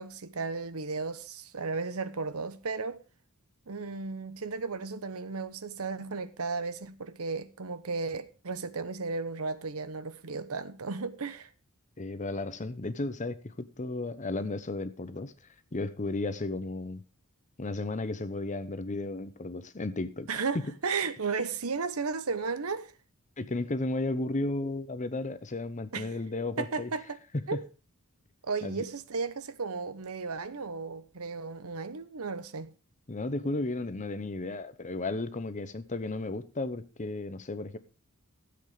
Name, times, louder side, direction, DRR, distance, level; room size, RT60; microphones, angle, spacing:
voice 1, 0.0-3.0 3.7-11.5 20.3-22.9 25.9-26.1 26.6-27.2 27.5-27.6 28.5-32.7, right 4 dB, 70° right, 0.9 m, -34 dB
voice 2, 12.0-15.3 15.7-17.0 17.6-20.3 20.6-20.7 23.4-26.9 27.3-27.6 28.6-28.7 33.1-37.8, left 2 dB, 35° left, 0.9 m, -34 dB
13.0 x 8.0 x 5.0 m
head